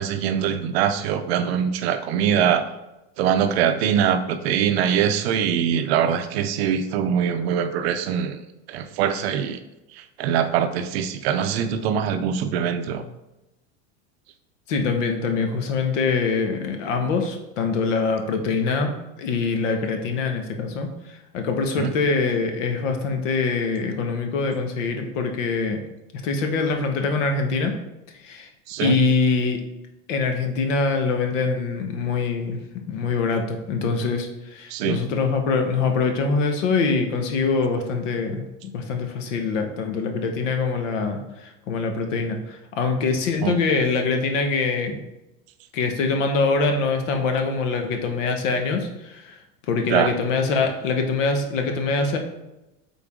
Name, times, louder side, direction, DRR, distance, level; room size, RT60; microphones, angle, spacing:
voice 1, 0.0-2.6 3.2-8.4 8.7-9.6 10.0-13.1 21.8-21.9 28.7-29.0 34.7-35.0 43.4-43.6 49.9-50.1, right 8 dB, 55° right, 9 dB, 0.6 m, -23 dB
voice 2, 14.7-18.9 19.2-25.8 26.2-27.8 28.2-28.5 28.8-29.6 30.1-32.6 32.9-45.0 45.7-49.4 49.7-52.2, left 4 dB, 80° left, 5 dB, 1.3 m, -24 dB
8.5 x 3.9 x 3.7 m, 0.96 s
supercardioid pair, 180°, 37 cm